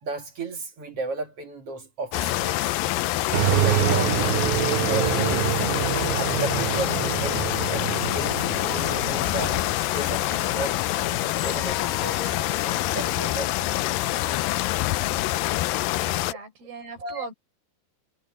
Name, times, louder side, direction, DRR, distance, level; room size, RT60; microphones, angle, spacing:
voice 1, 0.0-2.7 3.3-5.6 6.1-10.8 11.4-12.3 12.9-13.8 14.1-14.7 16.3-16.4 17.0-17.3, right 3 dB, 45° right, 2.4 m, -35 dB
sound 1, 2.1-16.3, left 16 dB, 85° left, 2.0 m, -26 dB
sound 2, 3.3-9.7, right 16 dB, 85° right, 2.1 m, -26 dB
sound 3, 3.8-13.4, left 3 dB, 15° left, 2.2 m, -41 dB
voice 2, 16.0-17.3, right 6 dB, 60° right, 7.2 m, -39 dB
omnidirectional pair, 4.9 m